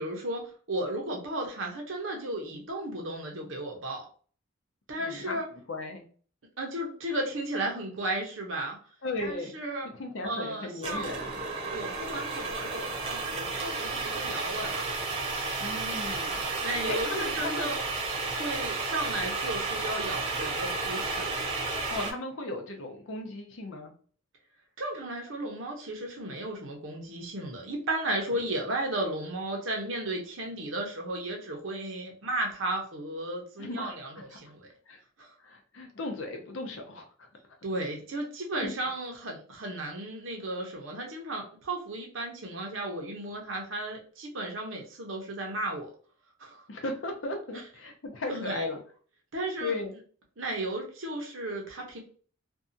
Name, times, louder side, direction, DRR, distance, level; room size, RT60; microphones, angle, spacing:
voice 1, 0.0-4.1 4.9-5.5 6.6-8.8 9.2-9.9 10.2-11.2 11.7-14.9 15.5-15.7 16.6-17.8 18.4-21.3 21.7-21.8 24.8-34.7 35.2-35.3 37.6-45.9 46.4-46.6 47.5-47.6 48.3-48.7 49.3-49.8 50.4-52.0, right 1 dB, 80° right, 1 dB, 0.8 m, -34 dB
voice 2, 5.0-5.4 5.7-6.1 9.0-9.5 10.0-11.4 15.6-16.5 16.9-17.8 21.9-23.9 28.3-28.4 33.6-33.9 34.9-35.0 35.4-37.1 38.6-38.7 46.7-48.8 49.6-49.9, left 2 dB, 80° left, 4 dB, 0.7 m, -36 dB
sound 1, 10.8-22.1, right 3 dB, 25° right, 0.7 m, -32 dB
2.6 x 2.3 x 2.6 m, 0.43 s
head